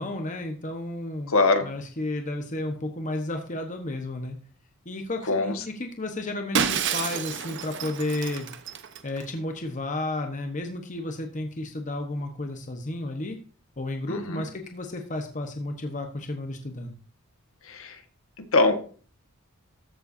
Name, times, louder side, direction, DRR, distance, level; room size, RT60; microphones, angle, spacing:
voice 1, 0.0-1.3 1.6-4.4 4.8-8.5 9.0-13.4 13.8-16.9, left 2 dB, 35° left, 4 dB, 1.1 m, -32 dB
voice 2, 1.3-1.7 5.3-5.6 14.1-14.4 17.7-18.0 18.4-18.8, left 3 dB, 65° left, 7 dB, 1.6 m, -23 dB
Shatter, 6.5-9.2, right 7 dB, 55° right, 1.0 m, -29 dB
14.0 x 7.8 x 2.7 m, 0.40 s
head